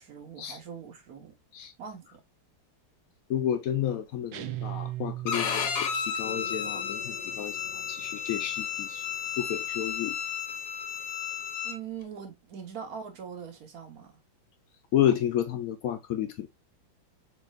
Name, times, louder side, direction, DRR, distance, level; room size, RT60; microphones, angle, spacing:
voice 1, 0.0-1.3 1.8-2.2 11.6-14.1, right 7 dB, 50° right, 1.4 m, -42 dB
voice 2, 3.3-9.1 9.4-10.2 14.9-16.5, left 10 dB, 85° left, 0.7 m, -31 dB
sound 1, 4.3-6.0, right 14 dB, 75° right, 1.3 m, -37 dB
Bowed string instrument, 5.3-11.8, left 7 dB, 60° left, 1.0 m, -33 dB
sound 2, 6.2-11.3, left 5 dB, 40° left, 1.2 m, -51 dB
4.6 x 4.3 x 2.3 m
omnidirectional pair, 2.2 m